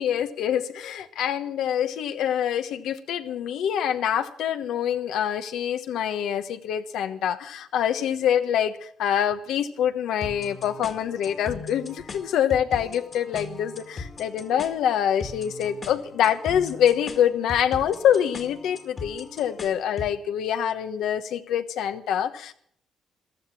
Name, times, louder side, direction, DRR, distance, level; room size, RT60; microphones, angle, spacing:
voice 1, 0.0-22.5, left 9 dB, 85° left, 9 dB, 1.2 m, -25 dB
sound 1, 10.2-20.2, left 4 dB, 40° left, 1.9 m, -40 dB
15.0 x 13.0 x 6.1 m, 0.63 s
cardioid pair, 90°, 0 cm